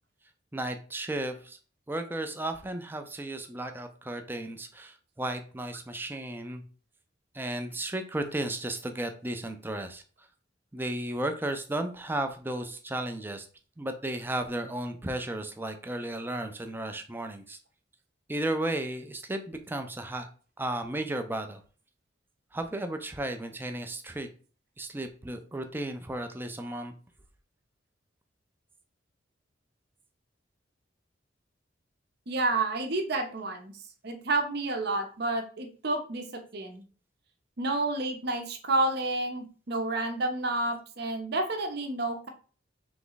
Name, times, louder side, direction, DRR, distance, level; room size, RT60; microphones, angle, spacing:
voice 1, 0.5-1.6 1.9-6.6 7.3-10.0 10.7-13.5 13.8-17.6 18.3-20.3 20.6-21.6 22.5-24.3 24.8-26.9, right 1 dB, 10° right, 6 dB, 0.5 m, -34 dB
voice 2, 32.3-33.7 34.0-36.8 37.6-42.3, right 2 dB, 60° right, 5 dB, 0.8 m, -30 dB
3.5 x 3.0 x 3.9 m, 0.39 s
head